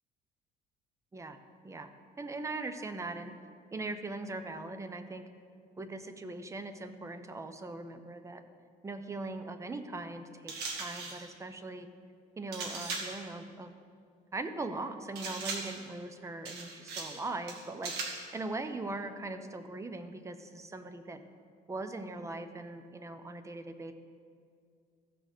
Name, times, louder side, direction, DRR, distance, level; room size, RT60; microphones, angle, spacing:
voice 1, 2.2-3.3 3.7-5.2 5.8-8.4 8.8-11.9 12.4-13.7 14.3-21.2 21.7-23.9, right 2 dB, 15° right, 9 dB, 0.7 m, -40 dB
sound 1, 10.5-11.3 12.5-13.2 15.2-15.8 16.4-17.2 17.5-18.3, right 3 dB, 80° right, 1.6 m, -38 dB
15.0 x 6.3 x 4.0 m, 2.3 s
cardioid pair, 110°, 17 cm